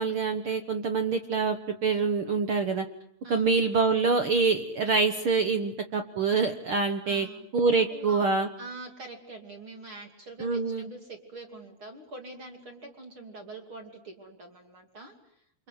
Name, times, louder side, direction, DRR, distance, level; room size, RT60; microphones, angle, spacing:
voice 1, 0.0-2.8 3.3-7.3 7.5-8.5 10.4-10.9, right 4 dB, 80° right, 7 dB, 1.2 m, -25 dB
voice 2, 7.0-7.5 7.9-8.3 8.6-15.7, right 2 dB, 35° right, 4 dB, 2.9 m, -45 dB
29.0 x 25.5 x 8.0 m, 0.70 s
omnidirectional pair, 4.5 m